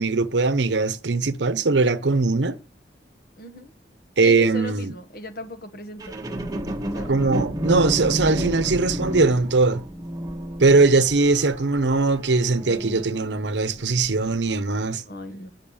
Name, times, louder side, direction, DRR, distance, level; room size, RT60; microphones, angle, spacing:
voice 1, 0.0-2.6 4.2-4.9 7.1-9.8 10.6-15.0, right 3 dB, 75° right, 0.8 m, -20 dB
voice 2, 3.4-3.7 4.2-6.1 6.9-7.1 15.1-15.5, left 1 dB, 50° left, 1.3 m, -37 dB
sound 1, 6.0-13.4 14.0-14.1, right 1 dB, 20° right, 1.3 m, -31 dB
8.9 x 5.7 x 7.1 m
head